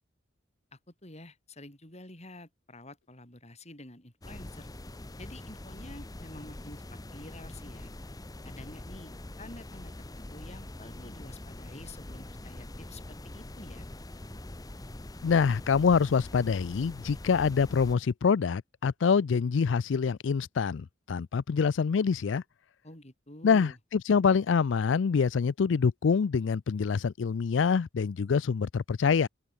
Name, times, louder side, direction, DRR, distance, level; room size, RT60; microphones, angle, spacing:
voice 1, 0.7-4.7 5.2-7.9 8.4-9.1 9.4-13.9 22.8-23.8, left 1 dB, 35° left, 7.3 m, -49 dB
sound 1, 4.2-18.0, left 1 dB, 20° left, 0.8 m, -44 dB
voice 2, 15.2-22.4 23.4-29.3, left 5 dB, 70° left, 0.4 m, -25 dB
open air
head